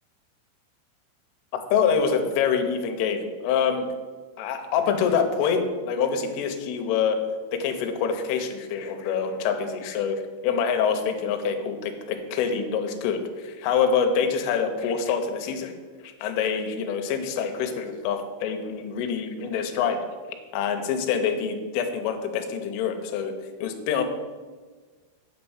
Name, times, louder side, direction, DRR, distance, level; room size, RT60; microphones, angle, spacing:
voice 1, 1.5-3.9 4.4-7.2 7.5-15.7 16.0-20.0 20.5-23.3 23.6-24.0, left 6 dB, 80° left, 6 dB, 3.3 m, -26 dB
9.3 x 4.4 x 7.1 m, 1.4 s
omnidirectional pair, 5.8 m